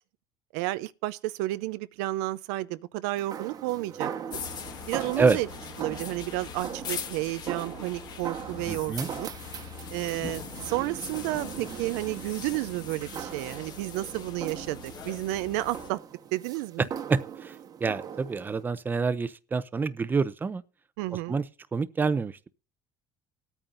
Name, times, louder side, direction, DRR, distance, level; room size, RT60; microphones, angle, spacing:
voice 1, 0.5-4.4 4.9-5.5 5.8-9.3 9.9-16.0 16.3-16.9 21.0-21.4, right 18 dB, 90° right, 0.5 m, -31 dB
sound 1, 3.1-18.6, right 8 dB, 45° right, 1.2 m, -40 dB
sound 2, 4.3-15.9, left 7 dB, 50° left, 1.6 m, -41 dB
voice 2, 8.7-9.1 16.8-20.6 21.3-21.4 21.7-22.5, right 4 dB, 20° right, 0.7 m, -27 dB
18.5 x 9.0 x 2.6 m
supercardioid pair, 105°, 9 cm